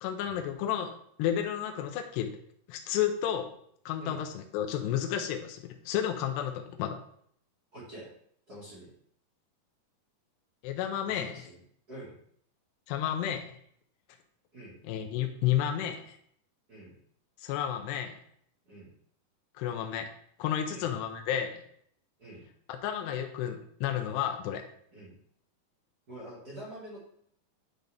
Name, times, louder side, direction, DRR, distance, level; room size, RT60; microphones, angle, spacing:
voice 1, 0.0-2.3 2.7-3.5 3.9-7.0 10.6-11.3 12.9-13.5 14.8-16.2 17.4-18.2 19.6-20.1 20.4-21.6 22.7-24.6, left 10 dB, 85° left, 5 dB, 2.7 m, -31 dB
voice 2, 7.7-8.1 8.5-8.9 11.0-11.6 11.9-12.1 14.5-14.8 16.7-17.0 18.6-18.9 20.7-20.9 22.2-22.4 24.9-25.1 26.1-27.0, right 1 dB, 50° right, -8 dB, 1.1 m, -46 dB
10.5 x 4.1 x 3.4 m, 0.65 s
omnidirectional pair, 4.8 m